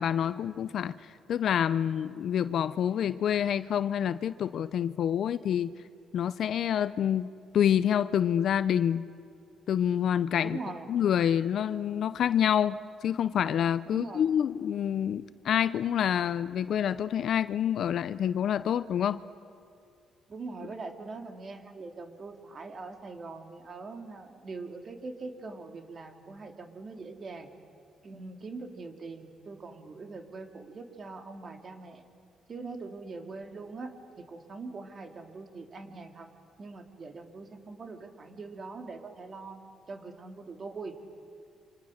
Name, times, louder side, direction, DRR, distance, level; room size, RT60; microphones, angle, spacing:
voice 1, 0.0-5.7 6.1-9.1 9.7-10.6 10.9-19.2, left 9 dB, 65° left, 14 dB, 0.6 m, -27 dB
voice 2, 10.4-10.9 13.9-14.3 20.3-27.5 28.0-32.0 32.5-36.3 36.6-39.6 39.9-40.9, right 3 dB, 45° right, 5 dB, 2.9 m, -42 dB
29.0 x 26.0 x 6.6 m, 2.4 s
cardioid pair, 90°, 0 cm